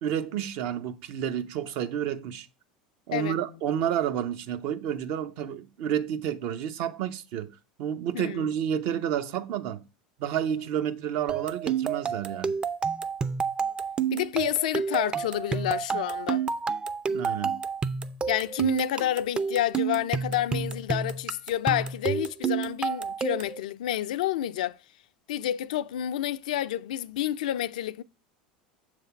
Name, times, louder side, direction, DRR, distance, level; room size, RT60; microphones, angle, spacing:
voice 1, 0.0-2.5 3.1-7.5 7.8-9.8 10.2-12.6 17.1-17.6, right 9 dB, 60° right, 0.7 m, -30 dB
voice 2, 8.1-8.5 14.1-16.4 18.3-24.8 25.3-28.0, left 12 dB, 80° left, 0.4 m, -29 dB
sound 1, 11.3-23.6, right 6 dB, 25° right, 0.5 m, -30 dB
7.1 x 3.3 x 5.7 m
hypercardioid pair, 90°, 4 cm